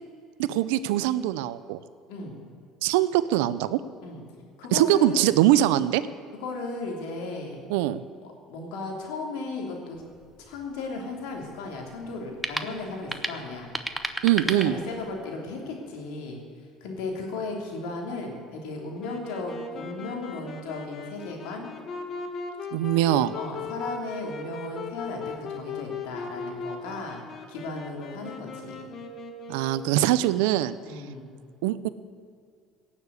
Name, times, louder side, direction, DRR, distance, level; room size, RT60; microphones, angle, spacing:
voice 1, 0.4-1.8 2.8-3.8 4.7-6.0 7.7-8.0 14.2-14.7 22.7-23.4 29.5-30.7 31.6-31.9, right 13 dB, 85° right, 15 dB, 0.6 m, -22 dB
voice 2, 4.6-5.3 6.4-7.6 8.5-10.0 10.4-13.7 14.4-16.4 16.8-21.7 23.3-27.2 27.5-28.9 30.8-31.3, left 3 dB, 80° left, 1 dB, 3.1 m, -35 dB
sound 1, 9.9-15.3, right 1 dB, 5° right, 1.0 m, -36 dB
Wind instrument woodwind instrument, 19.0-30.1, left 4 dB, 45° left, 1.7 m, -38 dB
17.0 x 7.3 x 8.3 m, 2.2 s
supercardioid pair, 90°, 0 cm